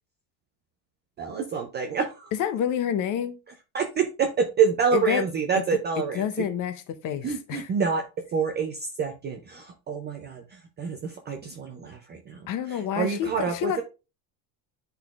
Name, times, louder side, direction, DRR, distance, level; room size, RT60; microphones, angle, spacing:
voice 1, 1.2-2.3 3.7-6.5 7.2-8.0 8.3-13.8, right 6 dB, 25° right, 0.3 m, -27 dB
voice 2, 2.4-3.4 4.9-5.2 6.2-6.7 7.0-7.7 12.5-13.8, left 9 dB, 40° left, 0.7 m, -28 dB
10.5 x 3.9 x 2.4 m
cardioid pair, 140°, 48 cm